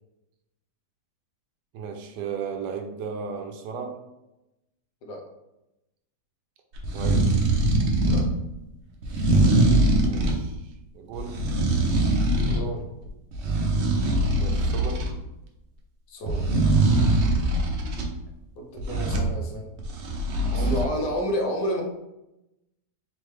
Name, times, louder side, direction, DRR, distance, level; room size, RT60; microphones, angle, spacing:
voice 1, 1.7-4.0 6.9-7.3 10.0-11.4 14.4-15.1 20.5-20.7, right 6 dB, 85° right, 5 dB, 1.2 m, -35 dB
sound 1, 6.7-8.3 9.0-10.4 11.1-12.7 13.1-15.1 16.3-18.1 18.8-19.3 19.8-20.9, right 2 dB, 60° right, 0.7 m, -22 dB
voice 2, 12.5-12.8 16.1-16.5 18.6-19.7 20.5-21.8, equal, 80° left, 2 dB, 1.4 m, -30 dB
3.7 x 3.2 x 3.2 m, 0.92 s
omnidirectional pair, 1.8 m